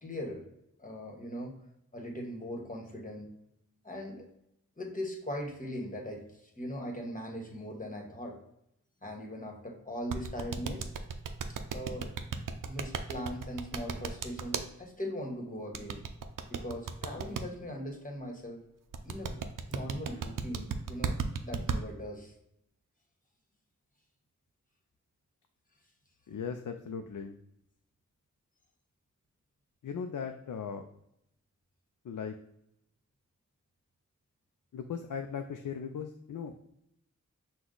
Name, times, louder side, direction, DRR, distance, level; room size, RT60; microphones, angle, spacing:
voice 1, 0.0-0.4 0.8-1.5 1.9-3.3 3.8-4.3 4.8-8.4 9.0-10.9 11.7-12.1 12.6-16.0 16.5-18.6 19.0-19.4 19.7-22.3, equal, 25° left, 1 dB, 1.3 m, -40 dB
sound 1, 10.1-14.6 15.7-17.4 18.9-21.8, right 6 dB, 85° right, 0.5 m, -34 dB
voice 2, 26.3-27.4 29.8-30.8 32.0-32.4 34.7-36.6, left 6 dB, 75° left, 6 dB, 0.5 m, -38 dB
6.1 x 2.3 x 3.8 m, 0.78 s
wide cardioid pair, 55°, 31 cm